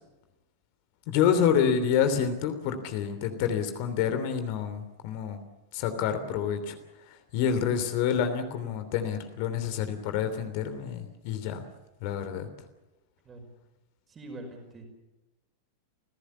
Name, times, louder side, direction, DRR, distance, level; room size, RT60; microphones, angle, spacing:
voice 1, 1.1-5.4 5.7-6.8 7.1-11.6 12.0-12.5, left 8 dB, 45° left, 8 dB, 3.1 m, -28 dB
voice 2, 14.1-14.9, right 1 dB, 20° right, 3 dB, 5.3 m, -44 dB
29.0 x 17.0 x 7.3 m, 1.0 s
figure-of-eight pair, 90°, 0 cm